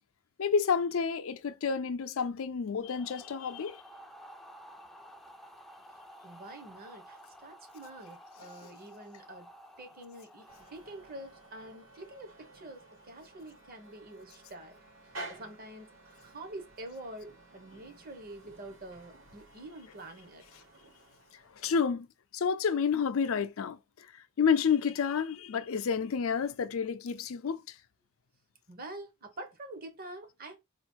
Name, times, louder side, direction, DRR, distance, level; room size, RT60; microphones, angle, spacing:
voice 1, 0.4-3.8 21.5-22.1 22.3-24.1 24.4-27.8, left 6 dB, 75° left, 0.5 m, -30 dB
sound 1, 2.8-11.9, equal, ahead, 0.4 m, -53 dB
voice 2, 5.9-9.5 9.8-14.7 15.3-20.4 28.7-30.6, right 1 dB, 45° right, 1.2 m, -47 dB
sound 2, 10.5-21.8, right 2 dB, 70° right, 2.2 m, -52 dB
4.3 x 2.4 x 4.4 m
head